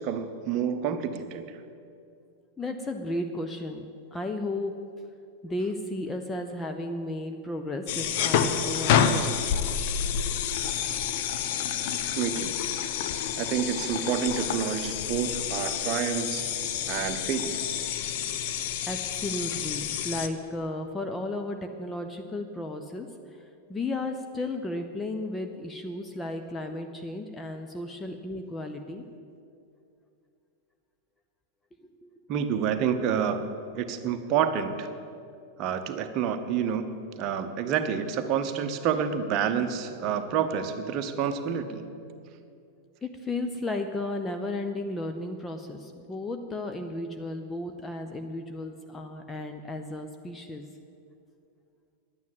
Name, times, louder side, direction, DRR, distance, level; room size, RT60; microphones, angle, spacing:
voice 1, 0.0-1.6 12.2-12.6 13.4-16.5 16.9-17.8 32.3-33.5 33.7-34.9 35.6-36.9 37.2-41.8, right 8 dB, 35° right, 7 dB, 0.9 m, -28 dB
voice 2, 2.6-3.8 4.1-4.7 5.4-9.4 18.9-23.4 23.7-29.0 32.0-32.1 43.0-50.7, left 2 dB, 15° left, 5 dB, 0.7 m, -34 dB
sound 1, 7.9-20.3, left 8 dB, 50° left, 0.7 m, -29 dB
11.0 x 9.5 x 7.3 m, 2.5 s
figure-of-eight pair, 90°, 0 cm